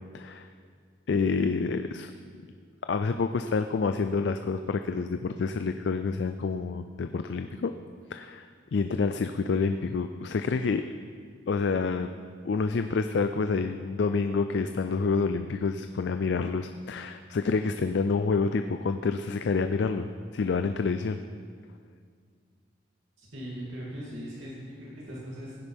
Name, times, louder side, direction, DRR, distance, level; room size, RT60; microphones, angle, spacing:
voice 1, 0.1-0.5 1.1-2.1 2.9-7.7 8.1-10.8 11.5-12.1 12.4-20.1 20.3-21.2, left 4 dB, 70° left, 8 dB, 0.4 m, -28 dB
voice 2, 23.2-25.6, equal, 85° right, -7 dB, 2.7 m, -40 dB
16.5 x 10.0 x 3.6 m, 2.1 s
head